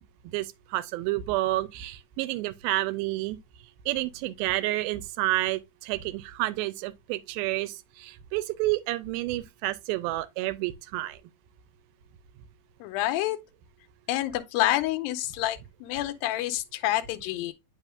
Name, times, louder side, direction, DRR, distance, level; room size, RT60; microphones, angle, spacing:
voice 1, 0.3-3.4 3.9-11.2, right 17 dB, 85° right, 2.4 m, -30 dB
voice 2, 12.8-13.4 14.1-17.5, left 15 dB, 85° left, 2.4 m, -28 dB
9.0 x 5.5 x 2.4 m
omnidirectional pair, 4.2 m